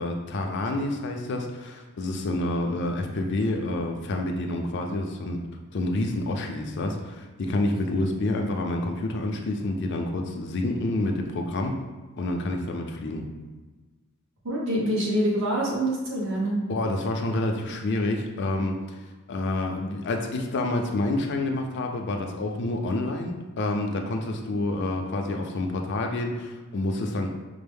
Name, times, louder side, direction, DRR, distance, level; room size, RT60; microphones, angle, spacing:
voice 1, 0.0-5.4 5.7-11.8 12.2-13.2 16.7-19.0 19.3-27.3, left 2 dB, 55° left, 3 dB, 0.4 m, -28 dB
voice 2, 14.4-16.6, right 1 dB, 60° right, -5 dB, 1.1 m, -25 dB
5.2 x 2.0 x 3.4 m, 1.3 s
head